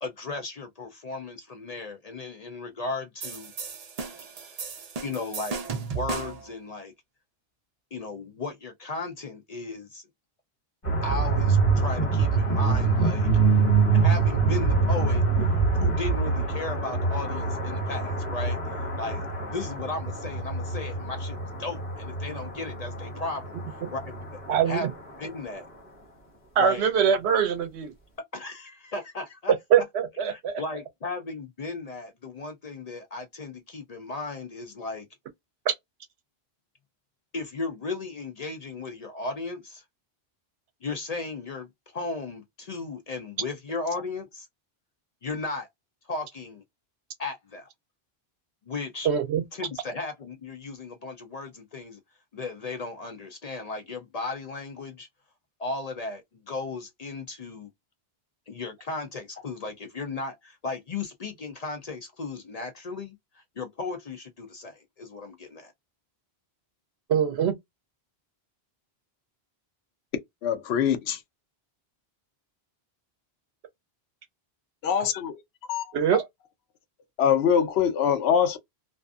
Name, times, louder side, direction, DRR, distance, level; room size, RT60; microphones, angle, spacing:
voice 1, 0.0-3.5 5.0-5.6 5.9-6.9 7.9-10.0 11.0-13.3 13.9-15.2 15.7-24.2 24.7-24.9 25.2-25.7 26.6-26.8 28.3-29.5 30.3-35.1 37.3-39.8 40.8-44.5 45.2-45.7 46.1-46.6 47.2-47.7 48.7-49.1 49.5-52.0 52.3-55.1 55.6-57.7 58.5-65.7, left 3 dB, 55° left, 0.5 m, -35 dB
sound 1, 3.2-6.5, right 5 dB, 45° right, 0.6 m, -35 dB
sound 2, 10.8-24.7, right 4 dB, 30° left, 1.3 m, -25 dB
voice 2, 24.5-24.9 26.6-27.9 29.7-30.6 35.7-35.8 49.0-49.4 67.1-67.5 75.9-76.2, right 8 dB, 85° right, 0.8 m, -23 dB
voice 3, 70.4-71.2 74.8-75.4 75.7-75.9 77.2-78.6, left 8 dB, 75° left, 0.8 m, -23 dB
2.5 x 2.4 x 2.3 m
omnidirectional pair, 1.1 m